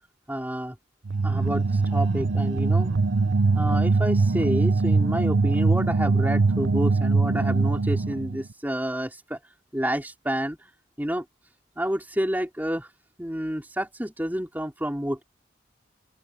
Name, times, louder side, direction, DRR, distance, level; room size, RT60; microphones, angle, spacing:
voice 1, 0.3-0.8 1.2-2.9 3.6-9.4 9.7-10.7 11.0-11.3 11.8-12.9 13.2-15.2, equal, 10° right, 3.5 m, -29 dB
sound 1, 1.0-8.4, right 3 dB, 75° right, 0.7 m, -22 dB
open air
head